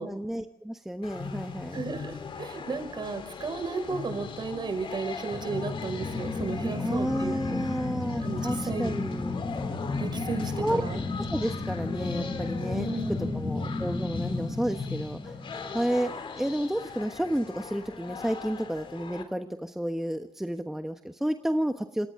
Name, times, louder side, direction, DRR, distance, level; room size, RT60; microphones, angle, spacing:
voice 1, 0.0-1.8 6.8-9.4 10.6-10.8 11.2-12.9 13.3-15.3 15.7-16.1 16.4-22.1, equal, 5° right, 6 dB, 1.2 m, -31 dB
sound 1, 1.0-19.2, left 5 dB, 55° left, 3.7 m, -39 dB
voice 2, 1.7-7.7 8.2-8.9 10.0-11.0 12.7-13.6, right 4 dB, 45° right, 7 dB, 5.5 m, -34 dB
sound 2, 5.3-16.2, left 3 dB, 25° left, 7.5 m, -33 dB
28.0 x 27.5 x 3.8 m, 0.69 s
cardioid pair, 110°, 11 cm